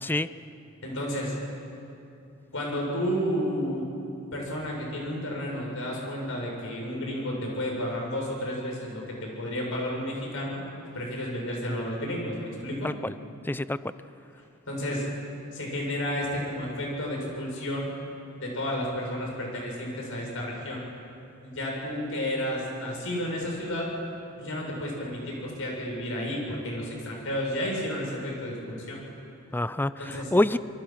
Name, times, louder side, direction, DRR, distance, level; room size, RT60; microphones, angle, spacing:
voice 1, 0.8-1.3 2.5-3.9 4.3-10.6 10.9-12.9 14.7-15.0 15.5-17.9 18.3-20.8 21.4-23.9 24.4-29.0 30.0-30.3, equal, 65° left, -1 dB, 7.3 m, -31 dB
voice 2, 12.8-13.1 13.5-13.8 29.5-30.6, left 1 dB, 10° left, 15 dB, 0.4 m, -26 dB
27.0 x 23.5 x 6.0 m, 2.7 s
head